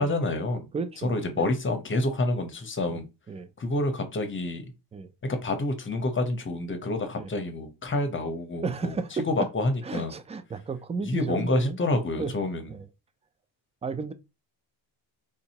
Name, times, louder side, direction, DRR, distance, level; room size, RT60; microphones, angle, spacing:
voice 1, 0.0-0.7 1.0-3.1 3.6-4.7 5.2-9.0 9.2-10.2 11.0-12.7, left 2 dB, 25° left, 0.8 m, -28 dB
voice 2, 0.7-1.5 2.9-3.0 3.3-3.5 4.9-5.1 7.2-7.3 8.6-9.3 9.8-11.8 12.2-12.3 12.7-12.9 13.8-14.1, right 4 dB, 15° right, 0.3 m, -33 dB
3.8 x 2.7 x 2.8 m
cardioid pair, 85°, 45 cm